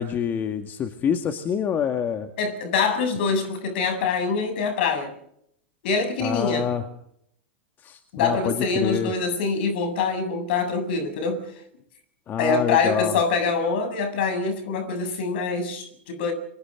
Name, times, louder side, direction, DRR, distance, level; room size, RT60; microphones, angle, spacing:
voice 1, 0.0-2.3 6.2-6.8 7.8-9.1 12.3-13.2, left 8 dB, 30° left, 2.1 m, -26 dB
voice 2, 2.4-5.1 5.8-6.7 8.1-11.4 12.4-16.3, left 4 dB, 60° left, 7.7 m, -24 dB
29.5 x 25.5 x 3.9 m
hypercardioid pair, 95°, 6 cm